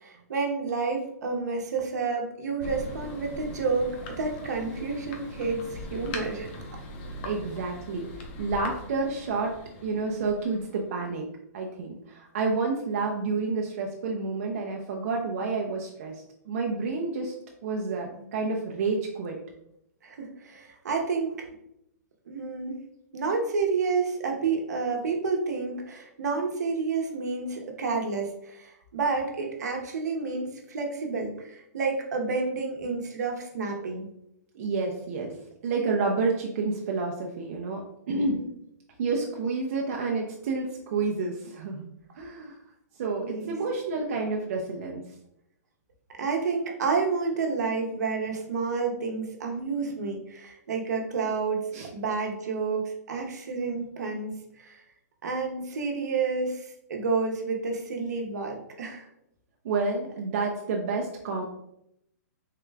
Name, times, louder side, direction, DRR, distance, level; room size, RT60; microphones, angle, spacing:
voice 1, 0.0-6.5 20.0-21.5 22.3-22.8 23.1-34.1 38.2-38.5 43.2-43.5 46.2-51.6 51.9-54.8 55.2-59.1, right 4 dB, 75° right, 2 dB, 0.8 m, -30 dB
Thunder, 2.6-10.9, left 1 dB, 35° left, 0.6 m, -41 dB
voice 2, 7.2-9.5 9.8-11.3 11.5-17.3 17.6-19.4 34.5-35.3 35.6-37.8 38.1-38.4 39.0-41.9 42.1-42.6 43.0-45.0 51.7-51.9 59.6-61.4, right 4 dB, 50° right, 0 dB, 0.5 m, -29 dB
3.7 x 2.2 x 3.3 m, 0.79 s
hypercardioid pair, 155°, 9 cm